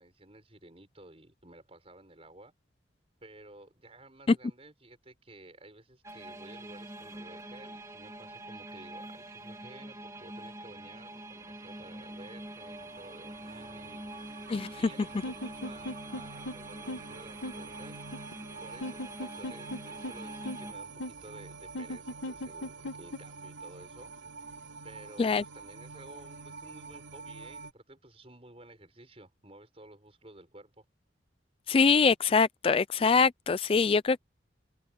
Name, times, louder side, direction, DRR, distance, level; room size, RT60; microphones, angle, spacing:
voice 1, 0.0-2.5 3.2-14.4 14.8-18.0 18.6-24.1 24.8-30.8, right 1 dB, 30° right, 6.5 m, -53 dB
sound 1, 6.0-20.7, right 1 dB, 15° right, 2.2 m, -45 dB
sound 2, 11.5-27.7, right 4 dB, 85° right, 2.6 m, -47 dB
sound 3, 15.2-16.2 16.5-16.6 16.9-17.0 17.4-17.5 18.1-18.3 18.8-19.8 20.0-20.1 20.4-20.6 21.0-21.1 21.7-23.2, left 1 dB, 90° left, 1.4 m, -36 dB
voice 2, 31.7-34.2, left 5 dB, 30° left, 0.3 m, -24 dB
head